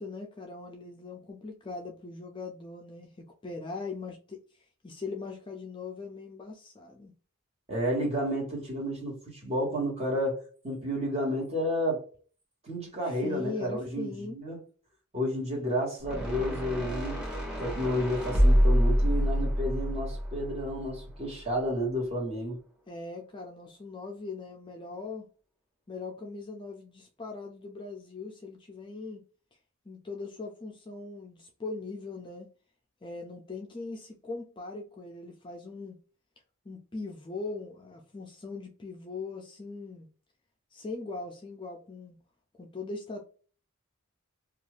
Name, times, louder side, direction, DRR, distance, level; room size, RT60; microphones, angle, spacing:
voice 1, 0.0-7.1 13.0-14.4 22.9-25.3 25.9-29.2 29.9-32.5 33.0-36.0 36.6-40.1 40.7-42.2 42.5-43.3, left 3 dB, 20° left, 0.4 m, -40 dB
voice 2, 7.7-12.1 12.6-14.6 15.1-17.2 17.6-22.6, equal, 30° right, 1.3 m, -31 dB
sound 1, 16.0-21.3, equal, 5° right, 0.9 m, -27 dB
2.6 x 2.4 x 3.1 m
head